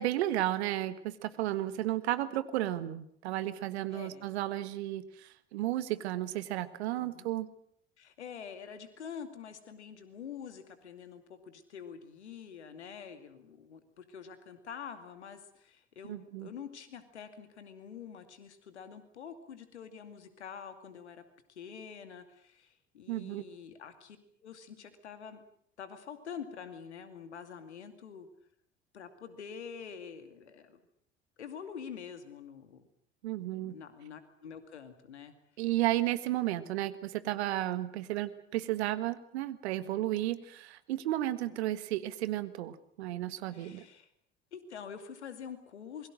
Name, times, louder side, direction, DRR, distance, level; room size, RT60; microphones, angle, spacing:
voice 1, 0.0-7.5 16.0-16.5 23.1-23.4 33.2-33.7 35.6-43.8, right 14 dB, 75° right, 14 dB, 1.6 m, -33 dB
voice 2, 3.9-4.3 7.0-7.3 8.0-21.2 21.5-24.2 24.4-25.4 25.8-28.3 28.9-30.8 31.4-32.9 33.5-35.3 41.4-41.6 43.5-44.1 44.5-46.1, left 7 dB, 85° left, 9 dB, 2.5 m, -46 dB
27.5 x 22.0 x 6.4 m, 0.67 s
hypercardioid pair, 65°, 33 cm